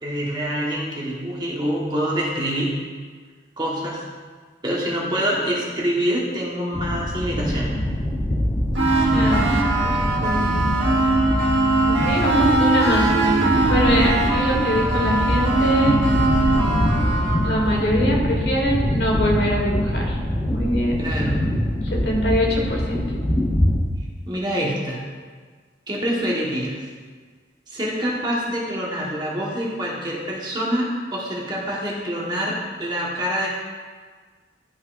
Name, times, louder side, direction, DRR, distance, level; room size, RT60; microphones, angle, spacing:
voice 1, 0.0-2.7 3.6-4.0 4.6-7.7 21.0-21.3 24.3-25.0 25.9-26.8 27.7-33.5, equal, 25° right, -5 dB, 1.3 m, -26 dB
sound 1, 6.7-23.8, left 1 dB, 20° left, 0.8 m, -24 dB
sound 2, 8.7-17.6, right 2 dB, 85° right, 1.5 m, -21 dB
voice 2, 9.0-10.7 11.9-16.0 17.4-20.2 20.4-20.9 21.9-23.0, equal, 65° left, -1 dB, 1.6 m, -23 dB
12.0 x 5.5 x 2.5 m, 1.5 s
head